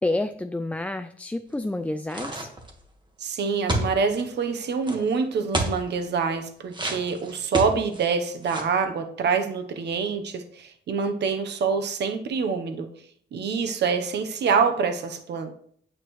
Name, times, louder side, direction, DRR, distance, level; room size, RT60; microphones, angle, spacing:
voice 1, 0.0-2.5, left 2 dB, 10° left, 8 dB, 0.3 m, -29 dB
sound 1, 2.1-2.8 3.7-4.2 4.8-5.0 5.5-5.8 6.7-8.1 8.4-8.8, right 2 dB, 25° right, 1.6 m, -28 dB
voice 2, 3.2-12.9 13.3-15.5, right 5 dB, 65° right, 7 dB, 0.9 m, -26 dB
9.1 x 8.4 x 3.1 m, 0.64 s
cardioid pair, 125°, 19 cm